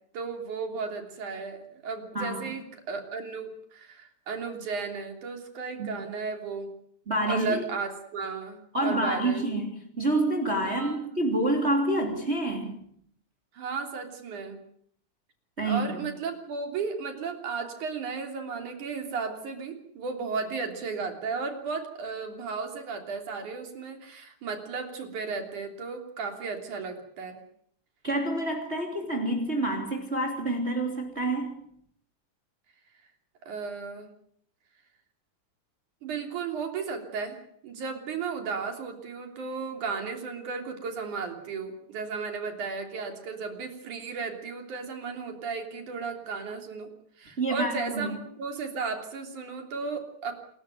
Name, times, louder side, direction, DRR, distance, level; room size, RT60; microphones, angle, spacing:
voice 1, 0.1-6.7 7.3-9.4 10.6-11.1 13.5-14.6 15.6-27.4 33.4-34.1 36.0-46.9 47.2-50.3, right 5 dB, 85° right, 5 dB, 4.8 m, -34 dB
voice 2, 7.1-7.6 8.7-12.8 15.6-16.0 28.0-31.5 47.4-48.2, right 1 dB, 20° right, 2 dB, 3.4 m, -28 dB
27.5 x 14.0 x 9.2 m, 0.66 s
omnidirectional pair, 3.4 m